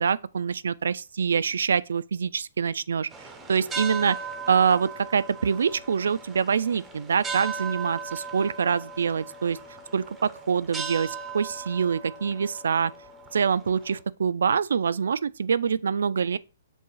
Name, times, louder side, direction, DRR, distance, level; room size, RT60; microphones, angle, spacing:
voice 1, 0.0-3.1 3.5-4.2 4.5-9.6 9.9-12.9 13.3-16.4, right 6 dB, 90° right, 0.4 m, -25 dB
sound 1, 3.1-14.0, right 5 dB, 5° right, 0.5 m, -38 dB
7.1 x 3.0 x 4.7 m
hypercardioid pair, 180°, 0 cm